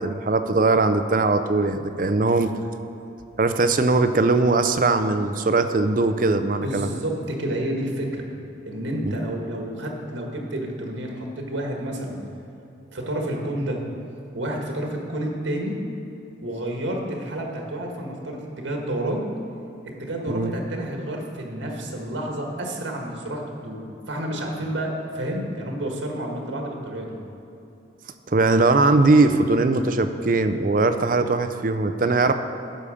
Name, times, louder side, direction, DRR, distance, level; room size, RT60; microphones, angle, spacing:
voice 1, 0.0-2.5 3.4-6.9 9.0-9.1 20.3-20.5 28.3-32.3, right 3 dB, 45° right, 9 dB, 0.5 m, -20 dB
voice 2, 6.5-8.3 8.6-12.2 12.9-13.8 14.3-15.8 16.4-19.3 19.8-27.1, right 1 dB, 80° right, 1 dB, 1.6 m, -30 dB
11.5 x 7.0 x 5.0 m, 2.9 s
head